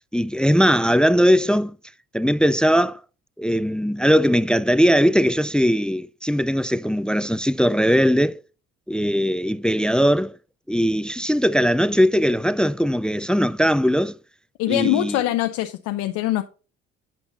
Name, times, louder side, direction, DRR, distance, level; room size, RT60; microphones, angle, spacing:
voice 1, 0.1-1.8 2.1-3.0 3.4-8.4 8.9-10.4 10.7-14.2 14.7-15.2, equal, 5° left, 0.3 m, -19 dB
voice 2, 14.6-16.4, left 15 dB, 75° left, 0.7 m, -23 dB
10.0 x 5.5 x 4.0 m
supercardioid pair, 65°, 29 cm